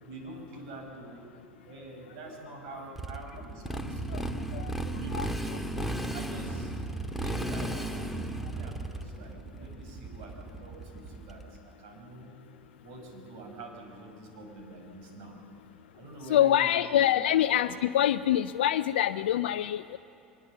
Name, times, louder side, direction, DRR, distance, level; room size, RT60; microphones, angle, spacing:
voice 1, 0.0-1.2 1.7-4.5 4.9-5.6 6.1-6.7 7.2-12.3 12.8-15.4 15.9-17.1, right 2 dB, 60° right, 2 dB, 5.9 m, -46 dB
Motorcycle, 3.0-11.6, right 1 dB, ahead, 1.9 m, -35 dB
voice 2, 16.3-20.0, left 11 dB, 70° left, 11 dB, 0.5 m, -25 dB
24.0 x 21.0 x 6.8 m, 2.8 s
figure-of-eight pair, 80°, 6 cm